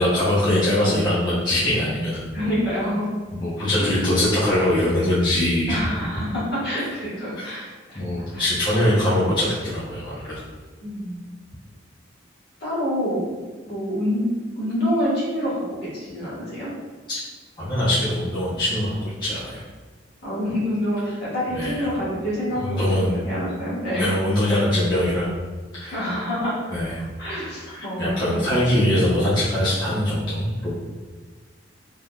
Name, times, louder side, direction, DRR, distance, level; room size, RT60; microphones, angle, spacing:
voice 1, 0.0-2.5 3.3-5.8 7.4-7.5 7.9-10.3 17.1-17.2 17.6-19.6 21.5-21.9 22.5-23.3 23.9-25.3 25.7-26.1 26.7-27.0 27.7-30.7, left 1 dB, 25° left, -12 dB, 0.8 m, -22 dB
voice 2, 2.3-3.1 3.8-4.0 5.7-8.0 8.3-8.5 9.1-9.2 10.8-11.2 12.6-13.3 13.6-14.3 14.6-16.7 20.2-23.0 23.3-24.1 25.9-26.7 27.2-28.5, equal, 55° left, -8 dB, 1.4 m, -27 dB
3.4 x 2.8 x 2.3 m, 1.4 s
head